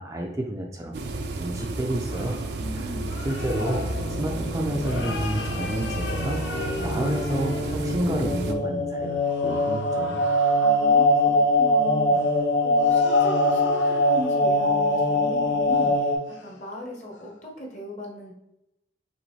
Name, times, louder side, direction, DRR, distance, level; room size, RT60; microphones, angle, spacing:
voice 1, 0.0-2.4 3.2-3.9 4.2-6.4 6.8-10.2, right 1 dB, 15° right, 1 dB, 0.4 m, -30 dB
sound 1, 0.9-8.5, right 2 dB, 70° right, 0.5 m, -32 dB
sound 2, 2.1-8.2 9.2-11.0 12.1-14.5 14.9-15.0 15.7-16.0 16.3-16.7 17.1-17.3, left 4 dB, 90° left, 0.6 m, -39 dB
voice 2, 2.6-3.2 10.6-16.1 16.4-18.3, equal, 40° left, -1 dB, 1.1 m, -37 dB
sound 3, 3.4-16.2, left 1 dB, 70° left, 1.5 m, -23 dB
5.1 x 3.1 x 3.2 m, 0.87 s
head